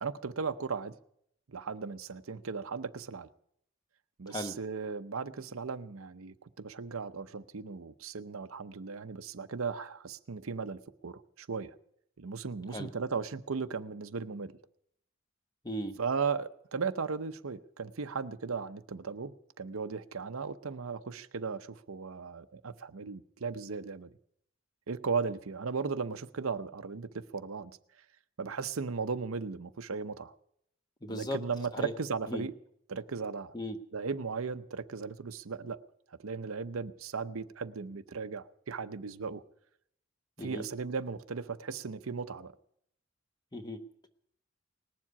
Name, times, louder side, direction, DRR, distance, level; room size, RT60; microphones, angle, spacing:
voice 1, 0.0-1.0 1.5-3.3 4.2-11.8 12.2-14.5 16.0-24.1 24.9-27.7 28.4-30.3 31.1-32.5 32.9-33.5 33.9-35.8 36.2-39.4 40.4-42.5, right 5 dB, 90° right, 12 dB, 0.7 m, -36 dB
voice 2, 15.6-16.0 31.0-31.4 31.7-31.9 32.3-32.5 33.5-33.8 40.4-40.6 43.5-43.8, equal, 20° left, 7 dB, 1.0 m, -37 dB
19.5 x 7.5 x 9.7 m, 0.72 s
head